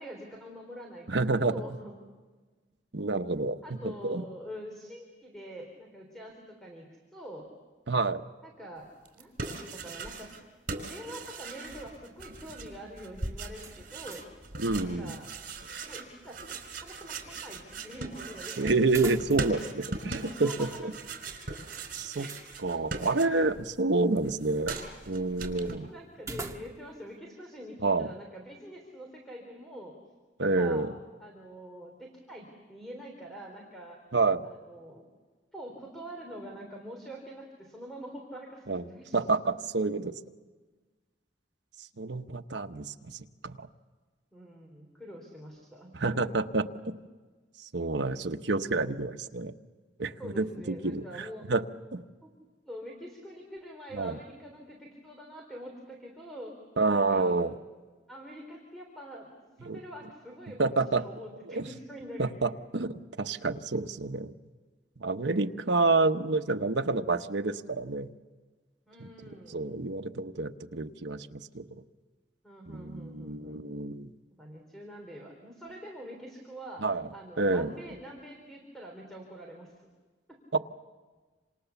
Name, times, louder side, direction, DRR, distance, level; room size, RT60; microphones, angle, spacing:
voice 1, 0.0-1.2 1.4-1.9 3.6-7.5 8.4-8.9 9.2-10.3 10.9-14.2 14.8-15.3 15.8-18.9 20.4-20.9 22.1-22.4 23.0-23.3 25.9-29.9 30.4-30.9 31.2-34.0 34.4-35.0 35.5-39.2 44.3-46.4 50.2-51.5 52.2-52.3 52.6-56.5 56.9-57.4 58.1-59.3 59.6-60.6 61.0-62.3 68.9-69.6 72.4-73.6 74.4-76.9 77.1-79.7, equal, ahead, 0 dB, 3.7 m, -45 dB
voice 2, 1.1-1.5 2.9-4.2 7.9-8.2 14.6-15.1 18.6-20.9 22.0-22.3 22.6-24.8 25.1-25.9 27.8-28.1 30.4-30.9 34.1-34.4 38.7-38.8 39.1-40.1 42.0-43.7 45.9-46.9 47.6-49.5 50.0-51.6 51.9-52.0 53.9-54.2 56.8-57.5 59.6-59.8 60.6-61.0 61.5-61.7 62.2-64.3 65.0-68.1 69.0-71.6 72.7-74.1 76.8-77.1 77.4-77.7 80.5-80.6, right 3 dB, 80° right, 6 dB, 1.1 m, -29 dB
sound 1, 9.0-10.4 10.7-23.6 23.9-25.7, right 3 dB, 50° right, 4.8 m, -40 dB
sound 2, 13.6-14.5 14.8-14.9 18.8-19.7 20.0-20.1 21.7-22.5 26.2-27.0, right 3 dB, 20° right, 1.5 m, -43 dB
28.0 x 27.5 x 7.1 m, 1.4 s
head